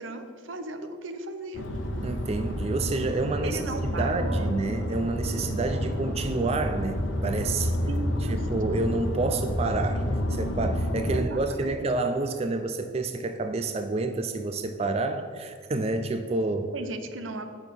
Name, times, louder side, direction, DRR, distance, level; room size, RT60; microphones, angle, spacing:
voice 1, 0.0-1.7 3.4-4.5 7.9-8.4 8.7-9.0 11.1-11.9 16.7-17.5, right 2 dB, 80° right, 8 dB, 0.8 m, -36 dB
sound 1, 1.5-11.2, equal, 75° left, 0.9 m, -29 dB
voice 2, 2.0-7.7 8.3-10.0 10.3-16.7, right 3 dB, 30° right, 7 dB, 0.4 m, -29 dB
8.6 x 6.2 x 5.2 m, 2.3 s
head